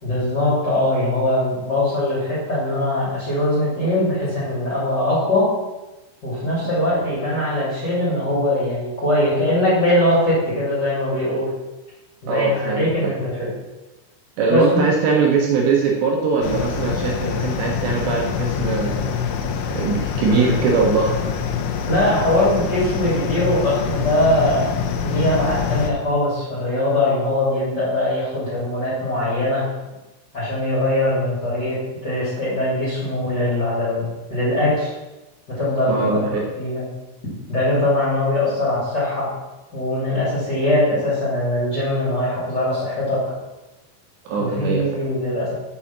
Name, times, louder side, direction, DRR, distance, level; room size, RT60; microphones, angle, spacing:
voice 1, 0.0-5.5 6.2-11.5 12.2-13.5 14.5-14.8 21.9-24.7 25.0-29.7 30.3-34.0 34.3-35.0 35.5-36.2 36.6-36.8 37.5-39.3 39.7-43.2 44.4-45.5, left 1 dB, 25° left, -7 dB, 2.7 m, -21 dB
voice 2, 12.3-13.1 14.4-19.2 19.7-21.1 35.9-36.4 44.3-45.0, right 4 dB, 70° right, 0 dB, 2.9 m, -21 dB
sound 1, 16.4-25.9, left 7 dB, 75° left, 2.8 m, -25 dB
7.0 x 6.9 x 7.2 m, 1.1 s
omnidirectional pair, 5.7 m